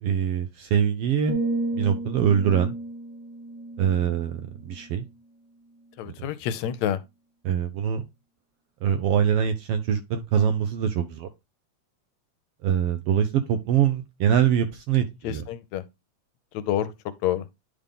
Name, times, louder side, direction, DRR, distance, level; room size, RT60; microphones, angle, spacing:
voice 1, 0.0-1.4 1.7-2.7 3.8-5.0 7.4-8.0 8.8-11.3 12.6-15.4, right 8 dB, 75° right, 1.5 m, -23 dB
sound 1, 1.3-5.3 5.6-6.0, right 2 dB, 55° right, 1.4 m, -33 dB
voice 2, 6.0-7.0 15.2-15.8 16.5-16.9 17.2-17.5, left 10 dB, 80° left, 1.9 m, -28 dB
10.5 x 3.7 x 3.6 m
omnidirectional pair, 3.3 m